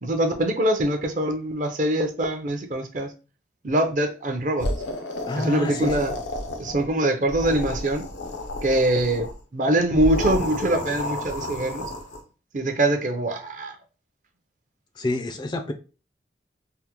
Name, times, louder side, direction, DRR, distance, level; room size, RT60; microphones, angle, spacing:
voice 1, 0.0-3.1 3.6-4.7 5.4-6.1 6.6-8.0 8.6-11.9 12.5-13.8, right 1 dB, 45° right, 0.5 m, -23 dB
sound 1, 4.6-6.9 7.2-9.3 9.9-12.2, left 1 dB, 85° left, 0.6 m, -31 dB
voice 2, 5.3-6.0 15.0-15.7, left 1 dB, 25° left, 0.3 m, -28 dB
3.4 x 2.1 x 2.9 m
head